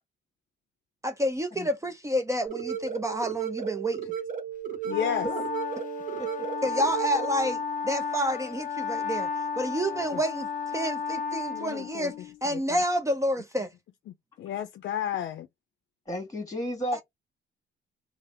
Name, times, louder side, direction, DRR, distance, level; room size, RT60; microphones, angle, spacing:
voice 1, 1.0-4.0 6.6-9.3 9.6-12.1 12.4-13.7 16.9-17.0, equal, 15° right, 0.5 m, -29 dB
sound 1, 2.5-7.5, right 8 dB, 40° right, 1.0 m, -35 dB
voice 2, 4.8-5.3 10.1-10.2 11.5-12.8 14.1-15.5, left 10 dB, 65° left, 0.5 m, -33 dB
Wind instrument woodwind instrument, 4.9-12.4, left 5 dB, 40° left, 0.8 m, -33 dB
voice 3, 6.2-6.7 9.9-10.2 16.1-17.0, equal, 15° left, 1.7 m, -34 dB
3.3 x 2.0 x 3.5 m
cardioid pair, 90°, 20 cm